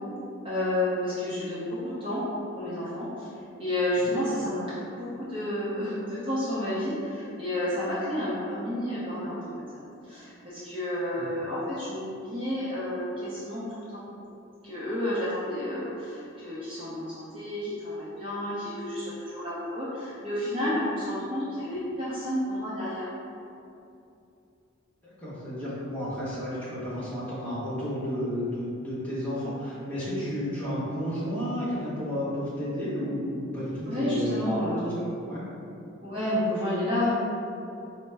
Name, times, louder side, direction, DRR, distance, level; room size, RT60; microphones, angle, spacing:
voice 1, 0.4-2.2 2.5-3.3 3.6-9.7 10.0-14.0 14.6-23.1 33.8-34.9 36.0-37.1, left 1 dB, 25° right, -11 dB, 0.7 m, -30 dB
voice 2, 25.2-35.4, equal, 5° left, -12 dB, 1.1 m, -32 dB
4.5 x 2.1 x 3.3 m, 2.7 s
head